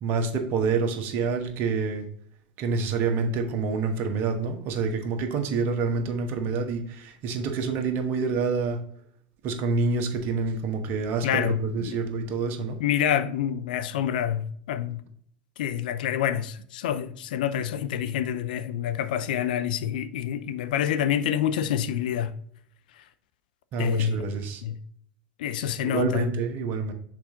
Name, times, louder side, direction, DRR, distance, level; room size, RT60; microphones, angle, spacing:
voice 1, 0.0-2.1 2.6-8.8 9.4-12.8 23.7-24.6 25.8-26.9, right 4 dB, 50° right, 1.2 m, -27 dB
voice 2, 11.2-12.0 12.8-15.0 15.6-22.3 23.8-24.8 25.4-26.3, left 10 dB, 70° left, 0.5 m, -27 dB
6.2 x 4.2 x 3.6 m
hypercardioid pair, 80°, 5 cm